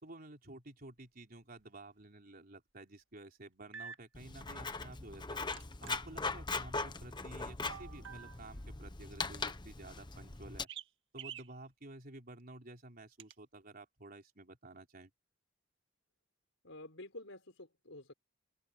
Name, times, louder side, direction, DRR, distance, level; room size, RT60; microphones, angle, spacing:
voice 1, 0.0-10.7 11.1-15.1, right 2 dB, 50° right, 4.0 m, -52 dB
sound 1, 1.6-1.7 3.7-4.0 5.5-5.9 7.7-8.5 10.7-10.9 11.2-11.5 13.2-13.3, right 8 dB, 65° right, 1.9 m, -47 dB
Writing, 4.1-10.6, left 3 dB, 25° left, 1.1 m, -40 dB
voice 2, 16.6-18.1, left 2 dB, 80° left, 5.0 m, -50 dB
open air
head